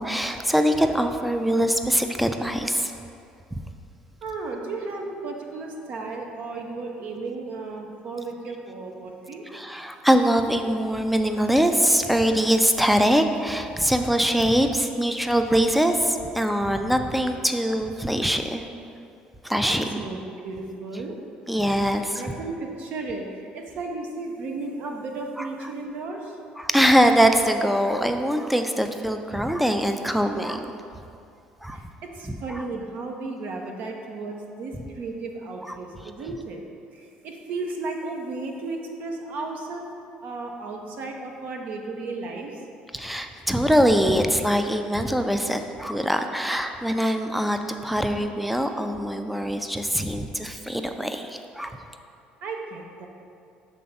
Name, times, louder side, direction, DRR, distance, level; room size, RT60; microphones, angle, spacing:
voice 1, 0.0-2.9 9.5-18.7 19.4-20.1 21.5-22.2 25.4-25.5 26.6-30.7 31.6-31.8 32.3-32.6 35.7-35.8 42.9-51.8, equal, ahead, 6 dB, 0.4 m, -23 dB
voice 2, 4.2-9.7 19.6-21.2 22.1-26.4 31.7-36.6 36.9-39.9 40.2-42.7 52.4-53.1, right 3 dB, 60° right, 2 dB, 0.9 m, -34 dB
6.4 x 3.4 x 5.6 m, 2.5 s
supercardioid pair, 95°, 3 cm